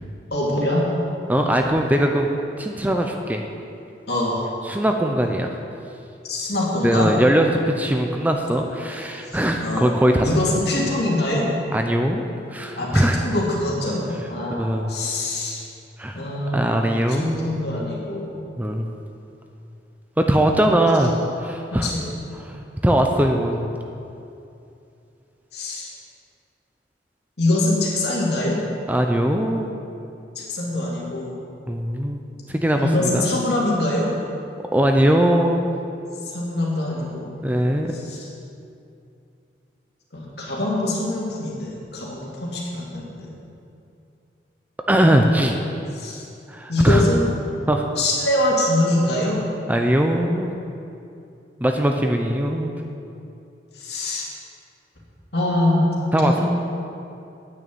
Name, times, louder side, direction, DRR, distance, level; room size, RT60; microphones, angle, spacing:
voice 1, 0.3-0.9 1.4-1.5 4.1-4.4 6.2-7.1 9.3-9.9 10.2-11.5 12.8-15.7 16.1-18.4 21.7-22.2 25.5-25.9 27.4-28.6 30.4-31.4 32.8-34.1 36.2-37.3 37.9-38.3 40.1-43.3 45.9-46.2 46.7-47.3 48.0-49.4 53.7-54.3 55.3-55.9 56.2-56.4, left 1 dB, 60° left, -3 dB, 2.5 m, -24 dB
voice 2, 1.3-2.3 2.6-3.4 4.7-5.5 6.8-10.3 11.7-12.2 12.5-13.2 14.6-14.9 16.0-16.2 16.5-17.6 18.6-18.9 20.3-21.1 21.4-21.9 22.5-22.6 22.8-23.7 28.9-29.7 31.7-32.2 32.5-33.4 34.7-35.7 37.4-38.1 44.9-45.6 46.5-47.0 47.7-47.9 49.7-50.5 51.6-52.7 56.1-56.4, right 1 dB, 10° right, 3 dB, 0.5 m, -20 dB
9.3 x 6.5 x 8.5 m, 2.7 s
head